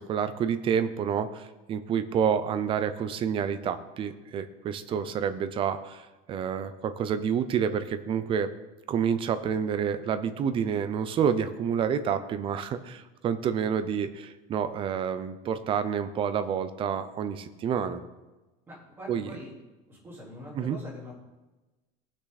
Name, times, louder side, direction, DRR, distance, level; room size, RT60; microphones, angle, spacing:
voice 1, 0.0-8.5 8.9-18.0 19.1-19.3 20.5-20.8, right 7 dB, 30° right, 11 dB, 0.7 m, -29 dB
voice 2, 18.7-19.5 19.9-21.1, left 1 dB, 15° right, -6 dB, 3.9 m, -44 dB
18.0 x 6.2 x 4.1 m, 1.1 s
cardioid pair, 165°, 18 cm